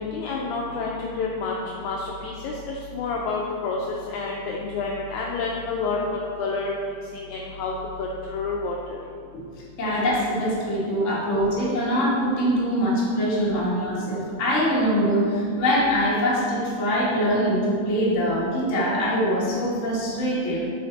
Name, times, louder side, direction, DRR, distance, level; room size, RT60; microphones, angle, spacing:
voice 1, 0.0-2.5 2.9-6.8 7.1-9.0, left 4 dB, 80° left, -1 dB, 1.7 m, -29 dB
voice 2, 9.8-20.6, equal, 30° left, -7 dB, 1.4 m, -23 dB
7.6 x 5.7 x 4.0 m, 2.3 s
omnidirectional pair, 3.9 m